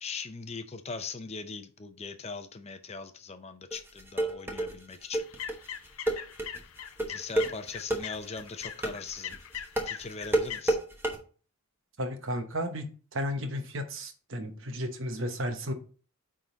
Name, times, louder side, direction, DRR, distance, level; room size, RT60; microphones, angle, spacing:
voice 1, 0.0-5.2 7.1-9.4 9.8-10.8, left 4 dB, 30° left, 0.5 m, -40 dB
sound 1, 3.7-11.2, right 1 dB, 10° right, 1.0 m, -29 dB
sound 2, 5.2-10.6, left 9 dB, 75° left, 0.6 m, -41 dB
voice 2, 12.0-12.9 13.1-15.7, equal, 60° right, 1.0 m, -33 dB
9.3 x 3.8 x 3.9 m
head